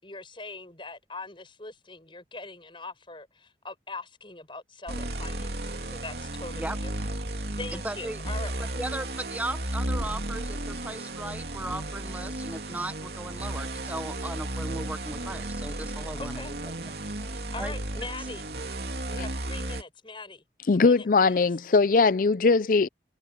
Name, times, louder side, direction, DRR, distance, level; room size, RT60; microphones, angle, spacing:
voice 1, 0.0-6.9 7.6-8.8 16.2-16.5 17.5-18.4 19.1-20.4 20.7-21.5, left 3 dB, 30° left, 6.4 m, -42 dB
sound 1, 4.9-19.8, right 1 dB, 65° right, 3.0 m, -34 dB
voice 2, 7.7-8.2 8.6-16.7 17.6-18.1, right 1 dB, 10° right, 0.6 m, -37 dB
voice 3, 20.7-22.9, left 4 dB, 50° left, 0.5 m, -20 dB
head